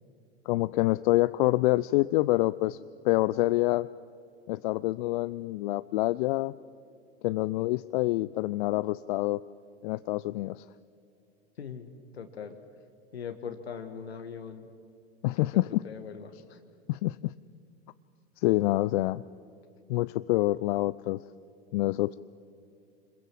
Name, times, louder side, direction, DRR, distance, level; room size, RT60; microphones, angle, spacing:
voice 1, 0.5-2.8 3.0-3.9 4.5-6.5 7.2-9.4 9.8-10.7 15.2-15.8 16.9-17.3 18.4-19.2 19.9-21.2 21.7-22.1, left 19 dB, 55° left, 16 dB, 0.5 m, -26 dB
voice 2, 11.6-12.6 13.1-14.7 15.2-16.6, left 6 dB, 80° left, 7 dB, 1.5 m, -41 dB
26.5 x 21.5 x 7.5 m, 2.5 s
figure-of-eight pair, 90°, 31 cm